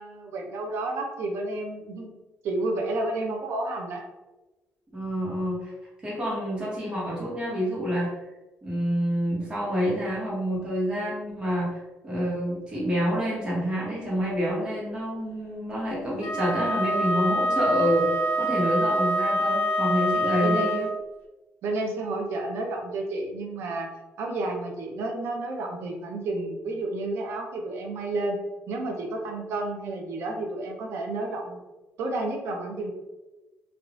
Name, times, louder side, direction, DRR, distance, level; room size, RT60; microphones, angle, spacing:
voice 1, 0.0-2.1 2.4-4.0 20.2-20.8 21.6-23.9 24.2-28.4 28.7-31.6 32.0-32.9, right 2 dB, 70° right, 2 dB, 0.6 m, -31 dB
voice 2, 4.9-5.7 6.0-8.2 8.6-11.8 12.0-18.1 18.4-20.9, equal, 20° right, -6 dB, 1.1 m, -27 dB
Wind instrument woodwind instrument, 16.2-20.9, equal, 70° left, 0.6 m, -25 dB
3.5 x 2.4 x 2.4 m, 1.1 s
cardioid pair, 160°, 4 cm